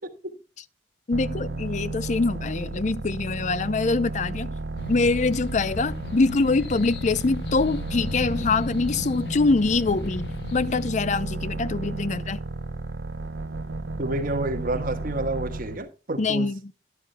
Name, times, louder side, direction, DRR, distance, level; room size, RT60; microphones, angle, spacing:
voice 1, 1.1-4.5 4.9-12.4 16.2-16.6, left 3 dB, 45° left, 0.5 m, -24 dB
sound 1, 1.1-15.8, right 2 dB, 80° right, 0.8 m, -33 dB
sound 2, 4.8-10.9, left 3 dB, 70° left, 0.8 m, -36 dB
voice 2, 14.0-16.5, right 2 dB, 50° right, 1.4 m, -29 dB
12.0 x 11.0 x 2.2 m
head